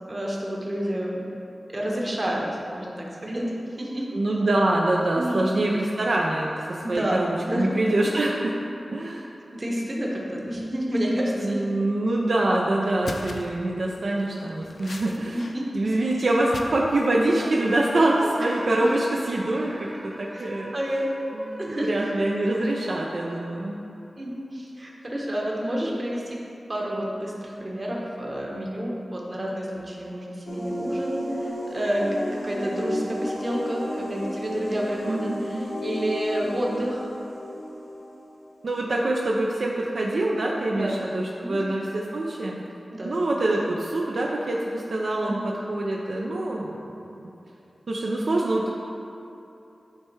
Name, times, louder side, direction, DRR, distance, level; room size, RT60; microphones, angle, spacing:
voice 1, 0.1-1.3 1.7-4.1 5.1-5.4 6.8-7.7 9.5-11.6 15.3-15.7 18.7-18.9 19.7-19.8 20.3-20.5 20.7-21.1 21.6-21.9 24.2-26.4 26.7-32.1 32.3-37.1 40.7-41.1 41.4-41.6 42.9-43.2 45.3-45.5, equal, 35° right, -3 dB, 1.2 m, -29 dB
voice 2, 4.1-8.5 8.9-9.3 11.4-15.4 15.7-19.9 20.2-20.7 21.3-23.8 35.1-35.7 38.6-42.6 43.0-45.4 45.7-47.3 47.9-48.8, right 1 dB, 70° right, -2 dB, 0.5 m, -25 dB
sound 1, 12.3-12.4 12.8-13.6 14.2-15.5 15.8-16.9 17.2-17.5, left 2 dB, 70° left, 0.5 m, -39 dB
sound 2, 17.4-23.9, equal, 5° right, 0.3 m, -41 dB
sound 3, 30.5-38.8, left 1 dB, 85° left, 1.2 m, -33 dB
9.5 x 3.4 x 4.5 m, 2.8 s
wide cardioid pair, 100°, 0 cm